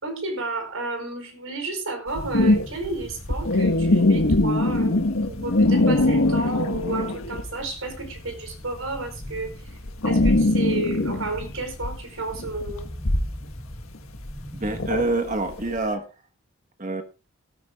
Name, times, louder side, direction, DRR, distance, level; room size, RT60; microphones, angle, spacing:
voice 1, 0.0-9.8 10.0-12.9, right 3 dB, 75° right, 7 dB, 4.7 m, -32 dB
sound 1, 2.1-7.6 7.9-15.8, left 2 dB, 90° left, 1.6 m, -22 dB
sound 2, 2.1-15.1, equal, 5° left, 4.3 m, -41 dB
voice 2, 14.5-16.1 16.8-17.0, right 2 dB, 35° right, 7 dB, 1.4 m, -26 dB
18.5 x 13.5 x 2.4 m, 0.31 s
head